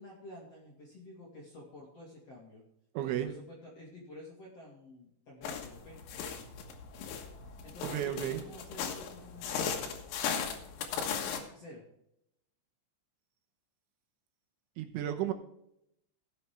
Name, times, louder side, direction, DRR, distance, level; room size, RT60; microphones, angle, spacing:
voice 1, 0.0-2.6 3.0-6.0 7.6-9.9 10.9-11.8, left 1 dB, 50° left, -3 dB, 2.0 m, -50 dB
voice 2, 2.9-3.3 7.8-8.4 14.8-15.3, right 11 dB, 80° right, 5 dB, 3.3 m, -33 dB
sound 1, 5.4-11.4, left 6 dB, 65° left, 2.9 m, -37 dB
17.0 x 7.6 x 3.4 m, 0.78 s
omnidirectional pair, 5.9 m